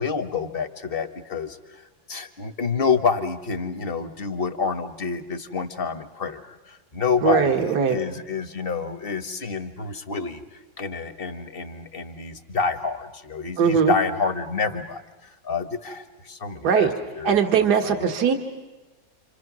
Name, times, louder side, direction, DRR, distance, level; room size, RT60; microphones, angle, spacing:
voice 1, 0.0-16.9 17.2-17.4 17.8-18.1, left 5 dB, 35° left, 8 dB, 1.3 m, -28 dB
voice 2, 7.2-8.0 13.6-13.9 16.6-16.9 17.2-18.3, right 7 dB, 60° right, 4 dB, 2.1 m, -20 dB
29.0 x 26.5 x 6.2 m, 1.1 s
omnidirectional pair, 2.0 m